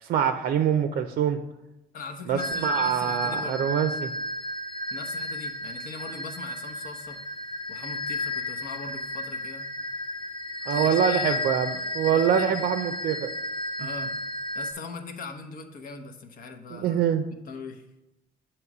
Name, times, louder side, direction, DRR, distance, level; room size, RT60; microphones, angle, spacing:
voice 1, 0.0-1.4 2.3-4.1 10.6-13.3 16.7-17.3, right 8 dB, 60° right, 7 dB, 0.5 m, -25 dB
voice 2, 1.9-3.6 4.9-7.2 7.7-9.7 10.7-11.4 12.1-12.5 13.8-14.1 14.5-17.0 17.5-17.8, left 4 dB, 55° left, 5 dB, 0.9 m, -40 dB
sound 1, 2.4-14.7, left 1 dB, 30° left, 1.0 m, -33 dB
7.8 x 3.0 x 6.0 m, 0.92 s
cardioid pair, 110°, 17 cm